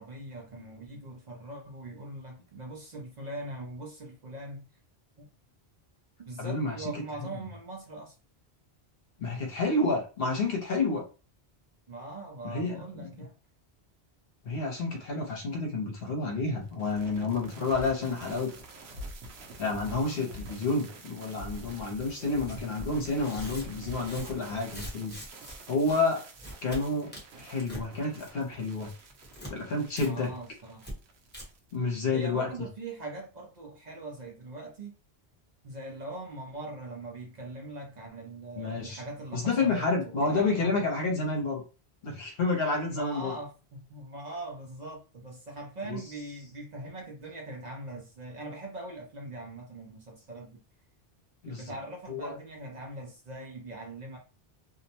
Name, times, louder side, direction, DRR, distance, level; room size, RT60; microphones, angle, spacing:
voice 1, 0.0-4.6 5.2-5.3 6.2-8.1 11.9-13.3 30.0-30.9 32.1-34.9 35.6-40.9 42.9-50.6 51.5-54.2, right 2 dB, 50° right, 0.6 m, -41 dB
voice 2, 6.4-6.8 9.2-11.0 12.4-13.1 14.4-18.5 19.6-25.1 25.7-26.3 26.6-27.1 27.4-28.9 29.5-30.3 31.7-32.5 38.6-39.0 39.3-41.6 42.0-43.3 45.8-46.0 51.4-51.7 52.1-52.3, left 3 dB, 70° left, 0.9 m, -29 dB
sound 1, 16.5-31.8, right 1 dB, 85° right, 0.9 m, -46 dB
Tearing, 22.4-22.6 23.1-25.6 25.8-26.0 26.3-26.8 27.1-27.8 28.1-28.5 28.8-29.5 29.9-30.1 30.3-30.4 30.8-30.9 31.3-31.4, equal, 10° left, 0.9 m, -42 dB
2.5 x 2.1 x 2.8 m
omnidirectional pair, 1.1 m